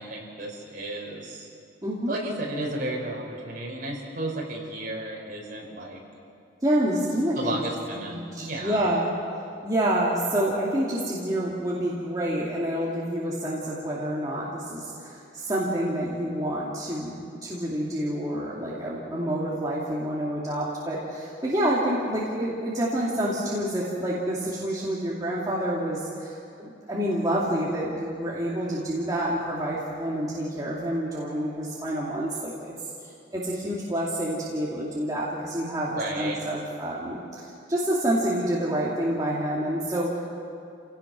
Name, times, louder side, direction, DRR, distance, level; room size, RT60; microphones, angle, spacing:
voice 1, 0.0-1.5 2.1-6.0 7.3-8.9 35.9-36.4, right 1 dB, 45° right, -2 dB, 5.0 m, -33 dB
voice 2, 1.8-2.1 6.6-7.6 8.0-9.1 9.6-32.7 33.0-40.2, right 1 dB, 20° right, -6 dB, 2.5 m, -28 dB
29.0 x 17.5 x 6.1 m, 2.5 s
head